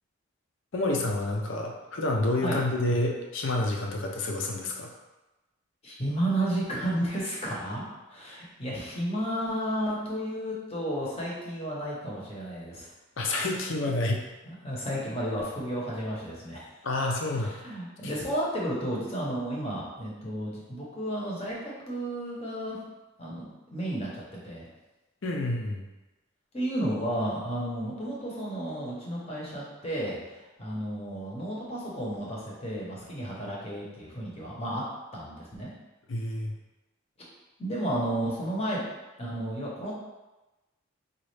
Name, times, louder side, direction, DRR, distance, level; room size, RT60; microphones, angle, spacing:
voice 1, 0.7-4.9 13.2-14.2 16.8-17.7 25.2-25.8 36.1-36.5, left 2 dB, 65° left, 0 dB, 0.5 m, -28 dB
voice 2, 5.8-12.9 13.8-13.9 14.4-16.7 17.3-22.8 23.2-24.7 26.5-34.8 35.1-35.7 37.6-38.8 39.2-39.9, right 1 dB, 30° left, -5 dB, 0.8 m, -32 dB
4.0 x 2.4 x 3.2 m, 1.1 s
head